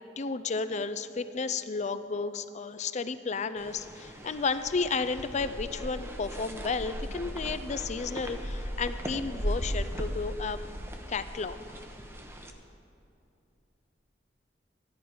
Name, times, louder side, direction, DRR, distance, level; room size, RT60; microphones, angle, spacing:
voice 1, 0.2-10.6 11.1-11.6, left 4 dB, 40° left, 12 dB, 0.5 m, -32 dB
sound 1, 3.6-12.5, equal, 15° right, 0.9 m, -37 dB
14.5 x 11.0 x 5.0 m, 2.7 s
head